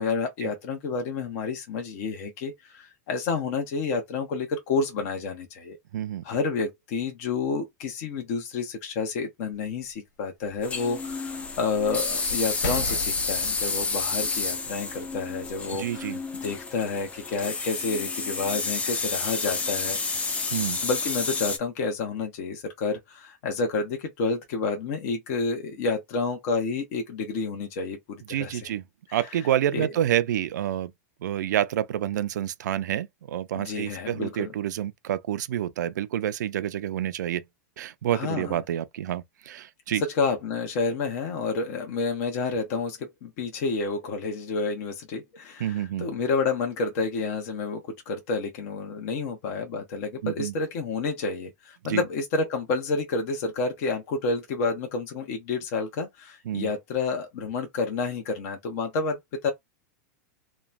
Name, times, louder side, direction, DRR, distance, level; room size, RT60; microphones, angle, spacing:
voice 1, 0.0-5.8 6.2-16.1 16.4-20.0 20.8-28.7 29.1-29.2 29.7-29.9 33.5-34.5 38.1-38.6 39.9-59.5, left 4 dB, 55° left, 0.9 m, -29 dB
voice 2, 5.9-6.2 15.7-16.2 20.5-20.8 28.3-28.8 29.1-30.9 31.2-37.4 37.8-40.0 45.6-46.1 50.2-50.5 51.8-52.0 56.5-56.7, right 11 dB, 85° right, 0.4 m, -28 dB
sound 1, 9.6-9.7 10.4-15.7 16.4-16.5, left 1 dB, 85° left, 1.4 m, -38 dB
sound 2, 10.6-21.6, left 4 dB, 15° left, 0.5 m, -30 dB
3.0 x 2.2 x 2.4 m
supercardioid pair, 135°, 9 cm